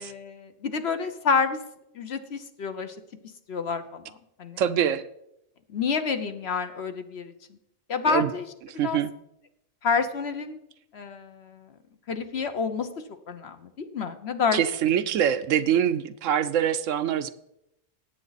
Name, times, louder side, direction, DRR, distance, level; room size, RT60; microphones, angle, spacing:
voice 1, 0.0-1.6 1.9-2.9 3.5-4.6 5.7-7.3 7.9-8.5 8.8-9.0 9.8-10.6 10.9-11.7 12.1-12.9 13.3-14.6, left 5 dB, 55° left, 8 dB, 1.1 m, -28 dB
voice 2, 4.6-5.0 8.0-8.3 8.8-9.1 14.5-17.3, right 9 dB, 75° right, 13 dB, 0.9 m, -24 dB
17.5 x 8.3 x 4.1 m, 0.81 s
omnidirectional pair, 1.4 m